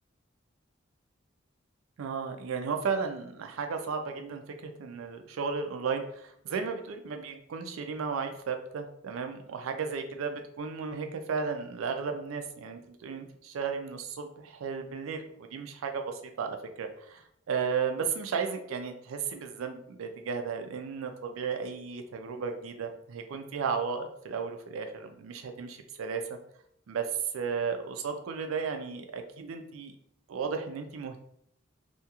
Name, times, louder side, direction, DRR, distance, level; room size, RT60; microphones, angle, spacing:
voice 1, 2.0-26.4 26.9-30.0 30.3-31.2, right 5 dB, 85° right, 6 dB, 0.4 m, -34 dB
2.8 x 2.3 x 2.8 m, 0.71 s
head